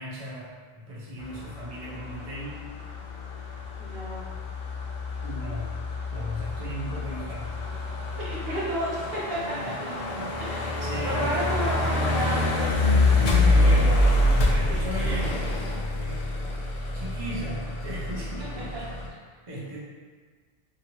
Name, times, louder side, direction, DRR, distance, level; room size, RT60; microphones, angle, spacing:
voice 1, 0.0-2.6 5.2-5.8 6.1-7.5 9.6-10.3 10.8-11.4 13.4-14.0 14.5-16.3 16.9-18.7 19.5-19.8, equal, 40° right, -7 dB, 0.6 m, -37 dB
sound 1, 1.2-19.1, left 2 dB, 55° left, 0.4 m, -26 dB
voice 2, 3.7-4.2 8.2-9.7 10.4-10.7 11.0-13.2 13.6-14.1 14.7-14.8 18.6-18.7, equal, 65° right, -7 dB, 1.1 m, -32 dB
2.7 x 2.7 x 2.9 m, 1.5 s
omnidirectional pair, 1.1 m